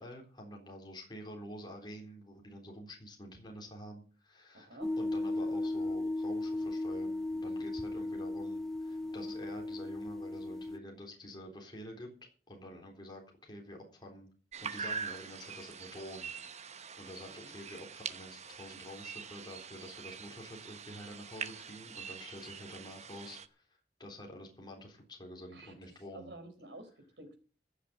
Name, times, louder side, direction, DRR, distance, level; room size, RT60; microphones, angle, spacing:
voice 1, 0.0-12.1 12.5-14.3 14.6-16.3 16.6-23.7 24.0-26.3, equal, 25° left, 0 dB, 3.8 m, -48 dB
voice 2, 4.5-4.9 8.9-9.3 17.2-17.5 25.5-27.3, right 1 dB, 75° right, 5 dB, 4.2 m, -52 dB
sound 1, 4.8-10.8, left 2 dB, ahead, 1.0 m, -36 dB
sound 2, 14.5-23.5, right 6 dB, 40° right, 0.9 m, -44 dB
15.0 x 6.8 x 8.0 m, 0.39 s
head